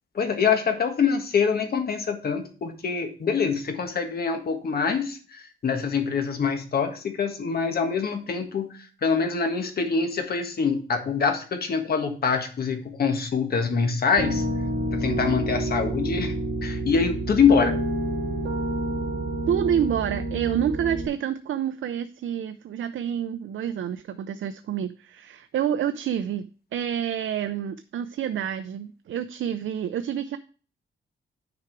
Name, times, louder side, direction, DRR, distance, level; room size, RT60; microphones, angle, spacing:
voice 1, 0.1-14.4 14.9-16.3 16.6-17.7, left 5 dB, 50° left, 6 dB, 1.6 m, -25 dB
Piano, 14.2-21.1, right 1 dB, 55° right, 2.7 m, -28 dB
voice 2, 19.5-30.4, right 9 dB, 75° right, 10 dB, 0.6 m, -28 dB
9.7 x 5.0 x 4.6 m, 0.38 s
wide cardioid pair, 170°, 20 cm